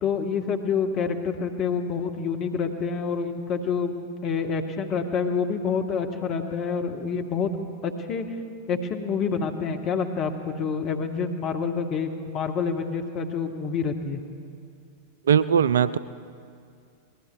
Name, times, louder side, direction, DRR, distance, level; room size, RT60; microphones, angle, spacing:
voice 1, 0.0-4.0 4.2-7.5 7.8-8.2 8.7-14.2, left 5 dB, 35° left, 5 dB, 1.2 m, -27 dB
voice 2, 15.3-16.0, right 8 dB, 65° right, 16 dB, 0.3 m, -19 dB
25.0 x 19.5 x 2.4 m, 2.4 s
figure-of-eight pair, 90°, 0 cm